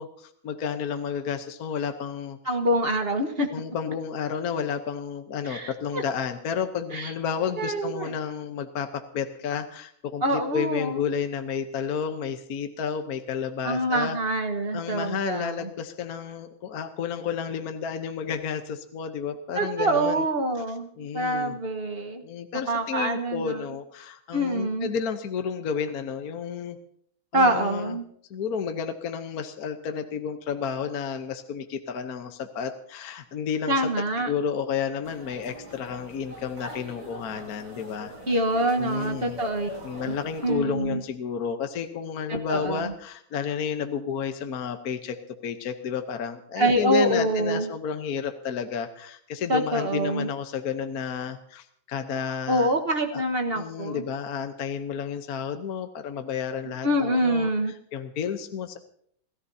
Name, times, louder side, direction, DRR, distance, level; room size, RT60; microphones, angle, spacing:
voice 1, 0.0-2.6 3.5-14.2 14.7-20.2 21.0-21.6 22.2-26.8 27.3-28.0 28.3-33.9 34.2-38.1 38.8-39.4 39.8-45.2 45.4-52.7 53.1-53.2 53.5-57.5 57.9-58.8, left 7 dB, 55° left, 7 dB, 1.2 m, -31 dB
voice 2, 2.4-3.5 5.4-6.0 6.9-7.1 7.6-8.1 10.2-11.0 13.6-15.7 19.5-22.2 22.7-23.6 24.3-24.9 27.3-28.0 33.7-34.3 38.3-39.7 40.0-40.2 40.4-41.0 42.3-42.9 46.6-47.7 49.5-50.3 52.5-54.0 56.8-57.7, right 1 dB, 35° right, 5 dB, 1.3 m, -25 dB
sound 1, 35.0-40.5, right 1 dB, 55° right, 7.1 m, -43 dB
29.0 x 14.0 x 2.8 m, 0.64 s
omnidirectional pair, 2.3 m